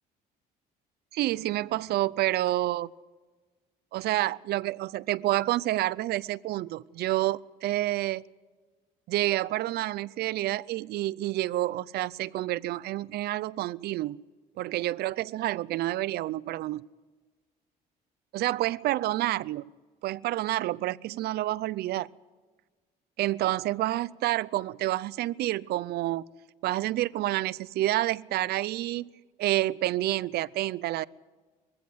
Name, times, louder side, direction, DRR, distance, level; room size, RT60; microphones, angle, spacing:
voice 1, 1.1-2.9 3.9-8.2 9.1-14.2 14.6-16.9 18.3-19.7 20.0-22.1 23.2-26.2 26.6-29.1 29.4-31.0, right 15 dB, 70° right, 0.6 m, -29 dB
22.0 x 15.5 x 8.0 m
cardioid pair, 110°, 17 cm